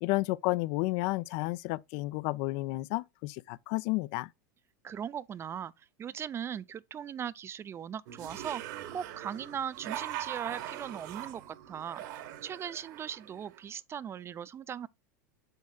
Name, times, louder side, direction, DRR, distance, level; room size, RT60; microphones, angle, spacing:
voice 1, 0.0-4.3, left 21 dB, 55° left, 0.4 m, -31 dB
voice 2, 4.8-8.6 8.9-12.0 12.4-14.9, right 8 dB, 25° right, 0.4 m, -39 dB
sound 1, 8.1-13.6, right 12 dB, 65° right, 1.2 m, -42 dB
7.1 x 6.4 x 2.3 m
hypercardioid pair, 105°, 10 cm